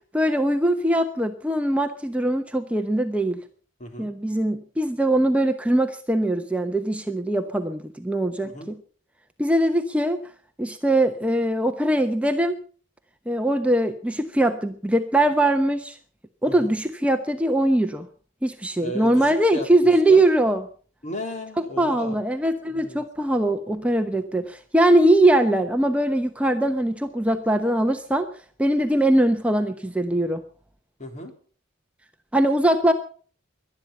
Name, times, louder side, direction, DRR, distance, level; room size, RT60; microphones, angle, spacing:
voice 1, 0.1-3.4 4.0-8.8 9.4-10.2 10.6-12.6 13.3-16.0 16.4-18.1 18.4-20.6 21.8-28.3 28.6-30.4 32.3-32.9, right 1 dB, 5° right, 5 dB, 0.9 m, -21 dB
voice 2, 18.8-20.2 21.0-22.2 22.7-23.0 31.0-31.3, equal, 40° left, 4 dB, 3.7 m, -35 dB
18.5 x 12.0 x 5.5 m, 0.43 s
head